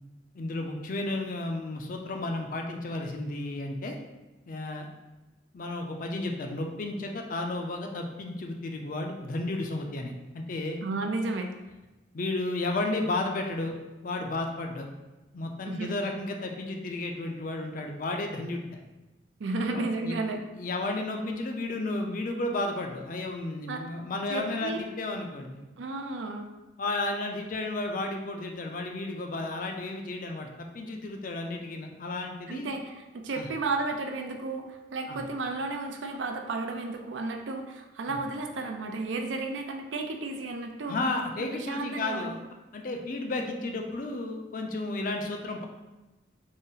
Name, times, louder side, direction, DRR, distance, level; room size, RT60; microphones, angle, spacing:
voice 1, 0.3-4.0 4.5-4.9 5.5-10.8 12.1-13.8 14.0-14.9 15.3-18.8 19.7-20.2 20.6-25.6 26.8-32.7 33.3-33.5 35.1-35.2 38.1-38.2 40.9-42.4 42.7-45.7, left 2 dB, 45° left, 3 dB, 0.4 m, -33 dB
voice 2, 10.8-11.5 15.7-16.1 19.4-20.4 23.7-23.9 24.3-24.8 25.8-26.5 32.5-41.0 41.4-42.3, right 3 dB, 90° right, 4 dB, 0.4 m, -33 dB
3.9 x 2.0 x 3.8 m, 1.1 s
head